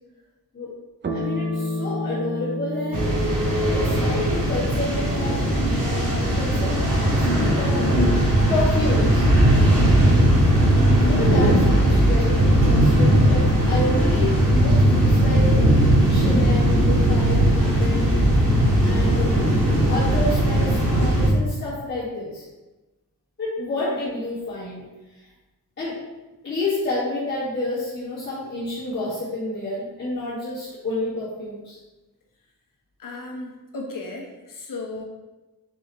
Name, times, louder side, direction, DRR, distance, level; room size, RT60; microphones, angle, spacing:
sound 1, 1.0-9.9, left 2 dB, 30° right, 0.6 m, -33 dB
voice 1, 1.1-3.1 3.7-7.8 8.5-9.3 10.7-15.7 16.1-18.3 18.8-19.3 19.9-22.4 23.4-24.8 25.8-25.9 26.4-31.8, left 2 dB, 30° left, -12 dB, 1.9 m, -29 dB
sound 2, 2.9-21.3, right 1 dB, 65° right, 2.0 m, -19 dB
sound 3, 6.5-21.2, left 1 dB, 5° right, 1.3 m, -30 dB
voice 2, 33.0-35.0, left 2 dB, 60° left, 0 dB, 1.2 m, -35 dB
6.2 x 5.0 x 3.1 m, 1.1 s
wide cardioid pair, 180°, 36 cm